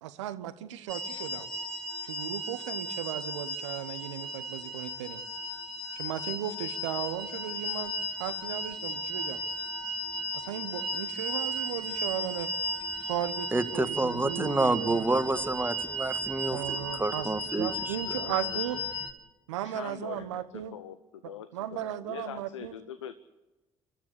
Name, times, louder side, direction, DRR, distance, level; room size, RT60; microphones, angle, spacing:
voice 1, 0.0-1.5 2.0-5.2 5.9-7.9 8.2-9.4 10.3-12.5 13.0-15.0 15.3-15.4 16.5-17.3 17.6-18.8 19.5-20.7 21.2-22.8, right 12 dB, 80° right, 13 dB, 1.1 m, -36 dB
sound 1, 0.9-19.1, equal, 5° left, 3.3 m, -35 dB
voice 2, 13.5-18.2, right 2 dB, 15° right, 11 dB, 1.7 m, -29 dB
voice 3, 18.2-18.8 19.6-23.1, left 9 dB, 85° left, 13 dB, 0.7 m, -43 dB
28.5 x 13.0 x 8.3 m, 1.1 s
hypercardioid pair, 50°, 15 cm